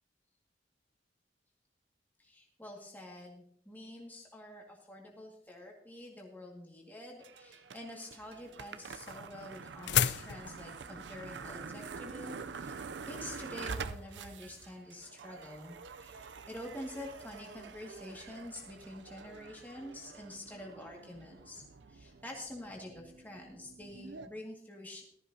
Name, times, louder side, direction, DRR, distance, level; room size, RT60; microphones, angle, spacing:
voice 1, 2.2-21.6 21.9-25.0, left 1 dB, 10° left, -2 dB, 2.1 m, -47 dB
sound 1, 7.2-24.3, right 5 dB, 80° right, 0.6 m, -47 dB
sound 2, 8.2-13.4, left 10 dB, 75° left, 0.4 m, -35 dB
15.5 x 13.5 x 2.8 m, 0.67 s
head